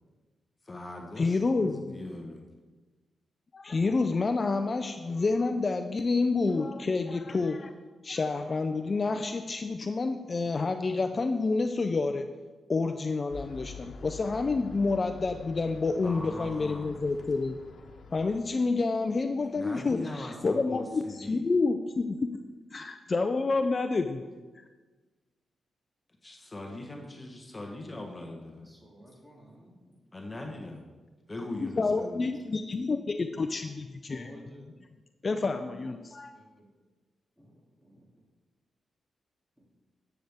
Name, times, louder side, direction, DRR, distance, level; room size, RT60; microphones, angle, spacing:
voice 1, 0.6-2.4 16.0-17.0 19.5-21.4 26.2-28.7 30.1-30.8 31.3-32.2, left 2 dB, 25° left, 1 dB, 1.2 m, -40 dB
voice 2, 1.2-1.9 3.5-7.7 8.0-12.3 12.7-17.6 18.1-22.3 22.7-24.2 24.6-24.7 31.8-34.3 35.2-36.3, left 3 dB, 40° left, 8 dB, 0.5 m, -28 dB
sound 1, 13.3-18.4, left 4 dB, 65° left, 1.3 m, -47 dB
voice 3, 26.6-27.0 28.2-30.5 34.1-34.6 36.3-36.8 37.4-38.0 39.6-39.7, equal, 10° right, -2 dB, 2.7 m, -55 dB
11.5 x 7.9 x 3.6 m, 1.3 s
cardioid pair, 75°, 0 cm